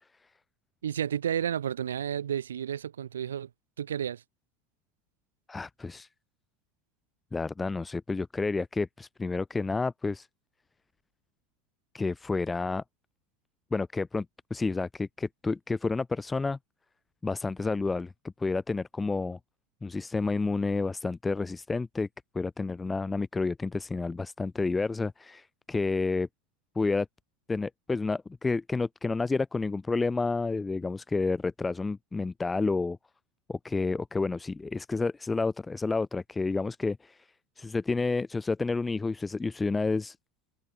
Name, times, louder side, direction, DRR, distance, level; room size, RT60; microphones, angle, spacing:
voice 1, 0.8-3.5 3.8-4.2, right 9 dB, 85° right, 2.2 m, -31 dB
voice 2, 5.5-6.1 7.3-10.3 11.9-12.8 13.7-14.2 14.5-16.6 17.2-19.4 19.8-22.1 22.3-26.3 26.7-27.1 27.5-33.0 33.5-37.2 37.6-40.1, left 3 dB, 15° left, 3.1 m, -30 dB
hypercardioid pair, 80°, 0 cm